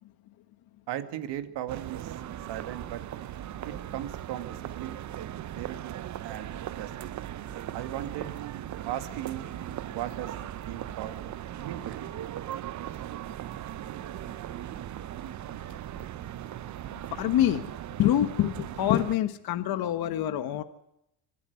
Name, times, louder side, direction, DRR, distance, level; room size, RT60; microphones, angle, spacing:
voice 1, 0.9-2.2 2.5-3.0 3.6-5.0 5.5-6.5 6.8-7.1 7.7-8.3 8.8-9.5 9.8-11.3 11.6-12.1, right 12 dB, 65° right, 8 dB, 2.4 m, -37 dB
sound 1, 1.7-19.2, right 12 dB, 40° right, 0.8 m, -38 dB
voice 2, 16.9-17.7 18.0-20.6, left 12 dB, 55° left, 9 dB, 1.4 m, -26 dB
26.0 x 12.0 x 9.6 m, 0.81 s
cardioid pair, 110°, 45 cm